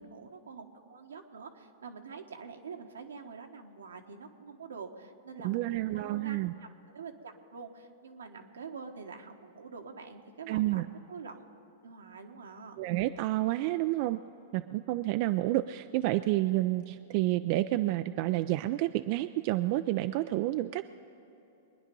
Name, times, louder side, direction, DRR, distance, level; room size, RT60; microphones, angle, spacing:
voice 1, 0.0-10.8 11.1-11.5 11.8-12.8, right 5 dB, 85° right, 4 dB, 1.3 m, -46 dB
voice 2, 5.4-6.5 10.5-10.9 12.8-14.2 14.5-20.9, right 16 dB, 50° right, 10 dB, 0.4 m, -29 dB
23.0 x 10.0 x 5.3 m, 3.0 s
hypercardioid pair, 115°, 0 cm